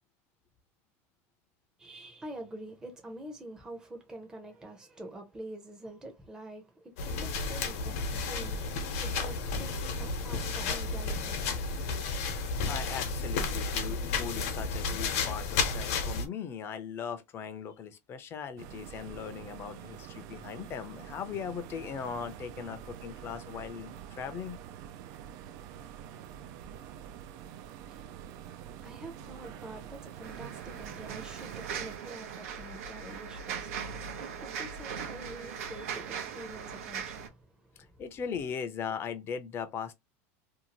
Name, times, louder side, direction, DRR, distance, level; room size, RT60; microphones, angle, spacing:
voice 1, 1.8-11.8 27.9-38.0, right 1 dB, 10° right, 0.7 m, -47 dB
sound 1, 7.0-16.3, left 4 dB, 75° left, 0.9 m, -32 dB
voice 2, 12.3-24.6 38.0-39.9, left 7 dB, 30° left, 0.5 m, -39 dB
sound 2, 18.6-32.0, right 9 dB, 55° right, 0.4 m, -46 dB
sound 3, 30.2-37.3, right 7 dB, 80° right, 0.7 m, -39 dB
2.7 x 2.4 x 2.8 m
supercardioid pair, 140°, 8 cm